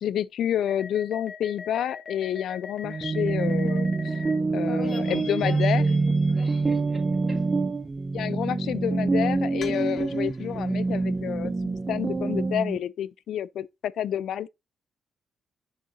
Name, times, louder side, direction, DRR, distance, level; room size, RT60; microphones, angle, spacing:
voice 1, 0.0-4.1 4.5-5.8 8.1-14.5, left 10 dB, 75° left, 0.3 m, -29 dB
sound 1, 0.7-4.4 4.8-7.0 9.6-10.6, left 5 dB, 55° left, 1.4 m, -42 dB
sound 2, 2.8-12.8, right 3 dB, 30° right, 0.6 m, -26 dB
voice 2, 4.4-7.0 7.3-7.5, equal, 10° left, 3.9 m, -41 dB
6.6 x 6.3 x 2.7 m
cardioid pair, 90°, 0 cm